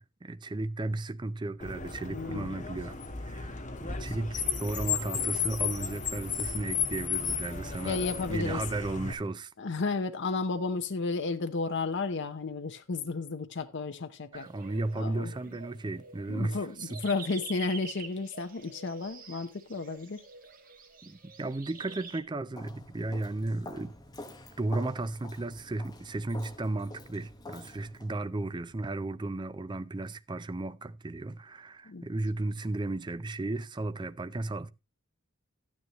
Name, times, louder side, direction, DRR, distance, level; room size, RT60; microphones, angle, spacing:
voice 1, 0.0-3.0 3.2-3.5 3.8-8.0 8.3-9.5 14.3-17.0 21.0-23.9 24.6-34.7, right 2 dB, 20° right, 0.5 m, -34 dB
Car, 1.6-9.1, left 6 dB, 35° left, 1.5 m, -34 dB
voice 2, 2.1-2.9 7.9-8.6 9.6-14.5 15.0-15.3 16.3-20.2 31.9-32.0, left 3 dB, 55° left, 0.7 m, -33 dB
sound 1, 14.3-22.2, right 5 dB, 40° right, 1.7 m, -47 dB
Walk footsteps, 22.5-28.1, left 1 dB, 20° left, 1.1 m, -47 dB
12.0 x 9.6 x 3.0 m
head